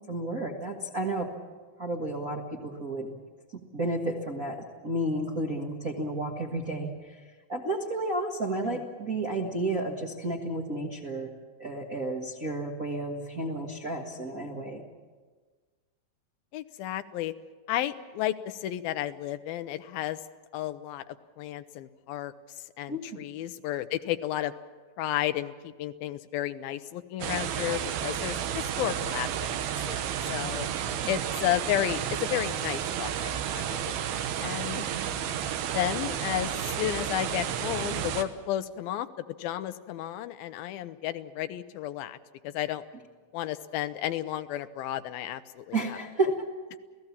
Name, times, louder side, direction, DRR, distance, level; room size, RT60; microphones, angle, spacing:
voice 1, 0.1-1.3 1.8-3.2 3.5-7.1 7.5-11.3 11.6-14.8 22.9-23.2 31.0-31.1 34.8-35.3 45.7-46.3, right 2 dB, 45° right, -1 dB, 1.1 m, -32 dB
voice 2, 16.5-17.3 17.7-20.2 20.5-24.5 25.0-29.3 29.9-30.7 31.1-34.1 34.4-34.9 35.7-39.1 39.4-42.2 42.4-42.8 43.3-46.0, left 13 dB, 85° left, 11 dB, 2.6 m, -32 dB
sound 1, 27.2-38.2, right 9 dB, 90° right, 3.0 m, -32 dB
28.0 x 17.5 x 7.3 m, 1.4 s
omnidirectional pair, 4.2 m